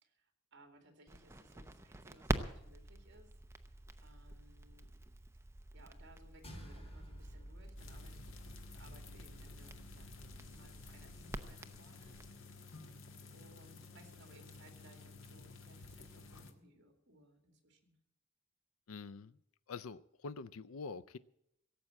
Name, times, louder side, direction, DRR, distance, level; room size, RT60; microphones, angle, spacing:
voice 1, 0.0-3.3 4.0-5.0 5.7-8.4 8.7-10.1 10.5-12.5 13.3-17.9, right 1 dB, 55° right, 2.5 m, -63 dB
Crackle, 1.1-12.3, right 1 dB, 15° right, 0.7 m, -46 dB
sound 1, 6.4-11.0, equal, 30° left, 4.0 m, -53 dB
sound 2, 7.8-16.5, left 3 dB, 65° left, 1.5 m, -54 dB
voice 2, 18.9-19.3 19.7-21.2, left 4 dB, 85° left, 0.5 m, -45 dB
17.0 x 7.6 x 8.5 m
head